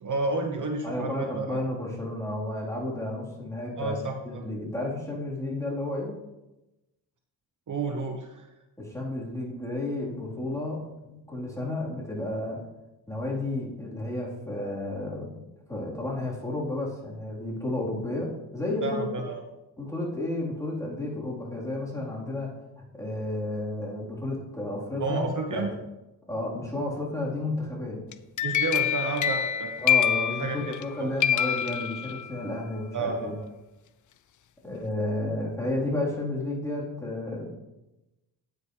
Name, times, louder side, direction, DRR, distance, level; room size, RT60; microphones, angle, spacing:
voice 1, 0.0-1.6 3.8-4.4 7.7-8.5 18.8-19.5 25.0-25.7 28.4-29.7 30.4-30.6 31.0-31.1 32.9-33.5, right 3 dB, 45° right, 3 dB, 1.1 m, -30 dB
voice 2, 0.8-4.0 4.2-6.1 8.8-12.6 13.1-19.1 19.8-22.5 22.9-25.2 25.5-25.7 26.3-28.0 29.8-33.4 34.6-37.5, left 1 dB, 5° left, -5 dB, 3.8 m, -32 dB
sound 1, 28.1-30.9 31.2-32.5, left 9 dB, 50° left, 0.5 m, -26 dB
9.4 x 9.0 x 3.3 m, 0.99 s
cardioid pair, 70°, 41 cm